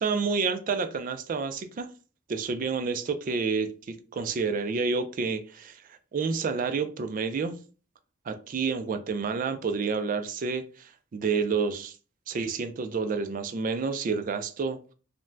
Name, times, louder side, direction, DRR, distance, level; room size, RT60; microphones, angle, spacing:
voice 1, 0.0-1.9 2.3-7.6 8.3-12.0 12.3-14.8, right 5 dB, 40° right, 9 dB, 0.3 m, -29 dB
2.5 x 2.1 x 3.2 m, 0.38 s
head